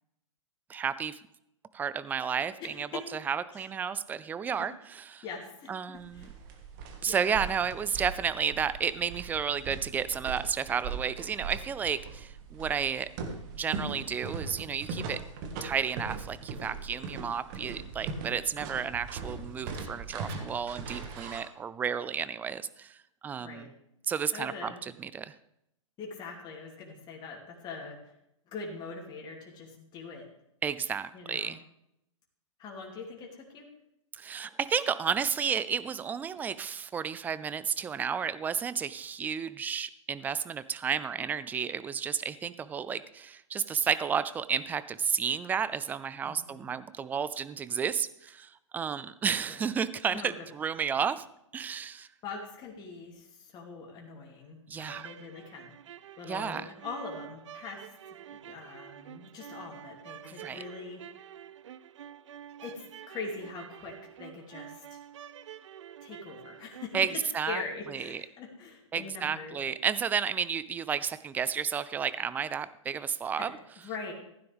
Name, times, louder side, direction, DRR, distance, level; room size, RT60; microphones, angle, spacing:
voice 1, 0.7-1.2 1.7-5.2 5.7-6.3 7.0-13.1 13.5-15.2 15.6-23.0 23.2-23.7 24.1-25.3 30.6-31.6 34.1-51.2 51.5-52.1 54.7-55.1 56.3-56.6 60.2-60.6 66.9-67.6 67.9-68.2 68.9-73.5, right 7 dB, 10° right, 15 dB, 0.4 m, -32 dB
voice 2, 2.6-3.1 3.5-3.7 4.6-4.7 5.2-6.3 7.1-7.3 23.4-23.7 24.3-24.8 26.0-28.1 28.5-30.3 31.1-31.5 32.6-33.7 46.3-46.7 49.5-49.7 50.1-50.4 52.2-55.7 56.2-57.9 58.3-61.0 62.6-65.0 66.0-69.6 73.4-74.1, left 4 dB, 25° left, -1 dB, 2.7 m, -42 dB
sound 1, 6.0-21.4, right 5 dB, 40° right, 1.9 m, -40 dB
sound 2, 54.8-67.1, right 10 dB, 65° right, 0.6 m, -48 dB
15.5 x 9.7 x 3.5 m, 0.80 s
hypercardioid pair, 125°, 17 cm